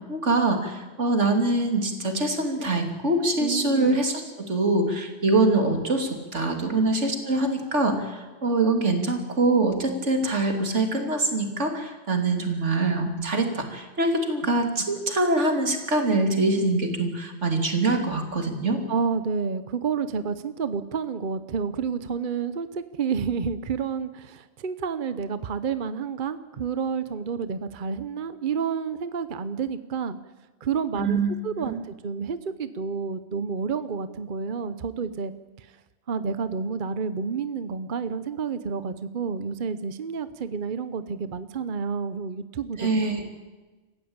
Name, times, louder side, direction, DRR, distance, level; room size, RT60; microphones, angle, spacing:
voice 1, 0.1-18.8 30.9-31.3 31.6-31.8 42.8-43.2, right 2 dB, 85° right, 4 dB, 3.2 m, -24 dB
voice 2, 3.4-4.0 6.7-7.1 18.9-30.2 30.6-35.3 35.6-35.7 36.1-42.9, right 6 dB, 50° right, 12 dB, 0.9 m, -30 dB
27.0 x 15.0 x 8.8 m, 1.2 s
omnidirectional pair, 1.2 m